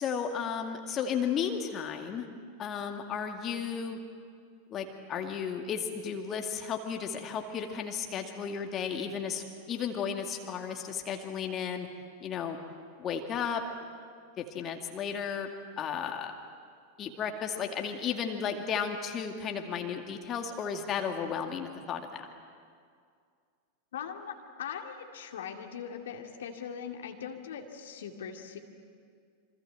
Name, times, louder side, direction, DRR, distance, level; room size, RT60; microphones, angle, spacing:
voice 1, 0.0-2.3 2.6-4.0 4.7-11.9 12.2-12.6 13.0-13.6 14.4-15.5 15.8-16.3 17.0-22.2, left 7 dB, 30° left, 4 dB, 2.3 m, -34 dB
voice 2, 23.9-28.6, left 7 dB, 60° left, 3 dB, 2.4 m, -40 dB
27.5 x 25.5 x 7.8 m, 2.2 s
figure-of-eight pair, 90°, 0 cm